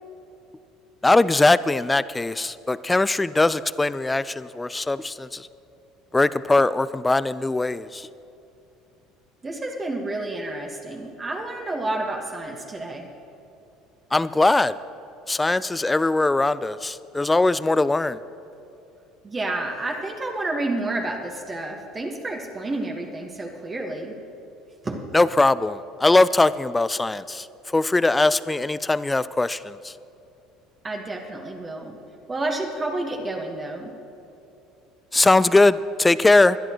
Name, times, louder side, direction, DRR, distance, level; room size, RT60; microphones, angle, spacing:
voice 1, 1.0-5.5 6.1-8.1 14.1-14.7 15.3-18.2 25.1-29.9 35.1-36.6, left 2 dB, 15° left, 17 dB, 0.4 m, -20 dB
voice 2, 9.4-13.1 19.2-24.2 24.8-25.1 30.8-32.0 32.3-33.9, right 2 dB, 25° right, 1 dB, 1.5 m, -30 dB
21.0 x 11.0 x 3.1 m, 2.8 s
hypercardioid pair, 75°, 0 cm